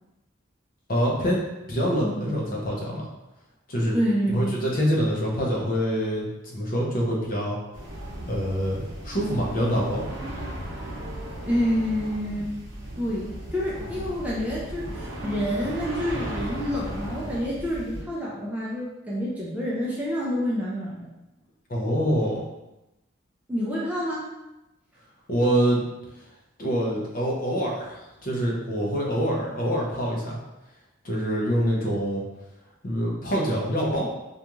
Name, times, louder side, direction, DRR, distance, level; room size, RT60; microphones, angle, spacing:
voice 1, 0.9-1.4 1.7-3.1 3.7-4.0 4.3-7.6 8.3-10.0 21.7-22.4 25.3-25.8 26.6-30.4 31.0-32.2 32.8-34.1, equal, 45° left, -3 dB, 0.6 m, -25 dB
voice 2, 2.0-2.4 3.9-4.6 11.4-12.7 13.0-13.3 13.5-21.1 23.5-24.3, equal, 5° right, -6 dB, 0.4 m, -28 dB
sound 1, 7.7-18.0, right 1 dB, 75° right, 0.7 m, -35 dB
2.5 x 2.3 x 2.9 m, 0.96 s
head